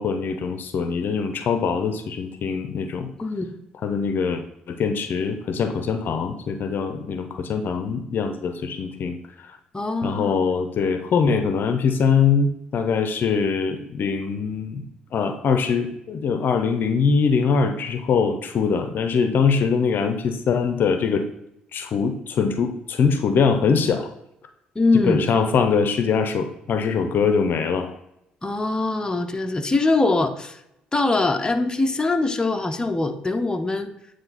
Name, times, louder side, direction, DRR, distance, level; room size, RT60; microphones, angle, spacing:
voice 1, 0.0-3.1 3.8-9.6 10.0-14.9 15.1-21.3 21.7-24.1 25.0-27.9, left 5 dB, 55° left, 8 dB, 0.7 m, -22 dB
voice 2, 3.2-3.5 9.7-10.3 24.8-25.2 28.4-30.6 30.9-33.9, left 3 dB, 20° left, 6 dB, 0.7 m, -22 dB
9.0 x 3.2 x 4.1 m, 0.81 s
hypercardioid pair, 55°, 4 cm